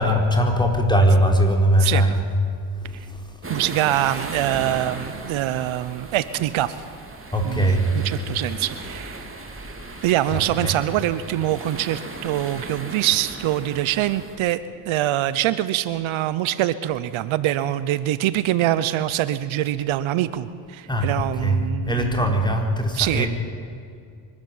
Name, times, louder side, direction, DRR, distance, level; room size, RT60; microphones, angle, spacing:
voice 1, 0.0-2.2 2.9-3.2 7.3-7.9 10.3-10.7 20.9-23.3, equal, 10° left, 2 dB, 4.4 m, -20 dB
voice 2, 1.8-2.1 3.5-6.8 7.4-9.3 10.0-14.6 14.9-22.3 22.9-23.3, right 13 dB, 70° right, 15 dB, 0.9 m, -24 dB
sound 1, 3.4-14.4, right 2 dB, 25° right, 3.7 m, -37 dB
24.0 x 13.0 x 9.5 m, 2.3 s
supercardioid pair, 75°, 49 cm